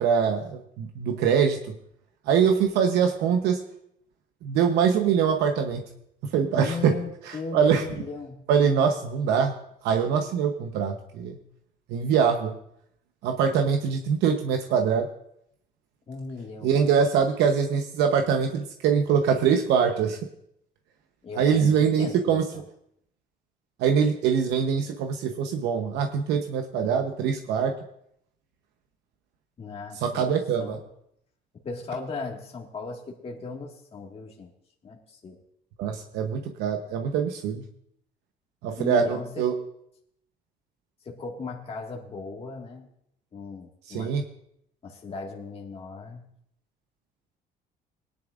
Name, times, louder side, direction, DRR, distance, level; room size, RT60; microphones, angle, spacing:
voice 1, 0.0-1.6 2.3-3.6 4.4-5.8 6.3-6.9 7.3-7.8 8.5-9.5 9.8-11.4 11.9-12.5 13.2-15.1 16.6-20.2 21.4-22.4 23.8-27.7 30.0-30.8 35.8-37.6 38.6-39.5 43.9-44.2, right 7 dB, 85° right, 5 dB, 1.0 m, -23 dB
voice 2, 6.6-8.4 16.1-16.7 21.2-22.4 29.6-30.8 31.6-34.5 34.8-35.4 38.8-39.5 41.0-42.9 43.3-44.1 44.8-46.3, left 4 dB, 35° left, 0 dB, 1.9 m, -37 dB
19.0 x 10.5 x 2.5 m, 0.73 s
cardioid pair, 110°, 17 cm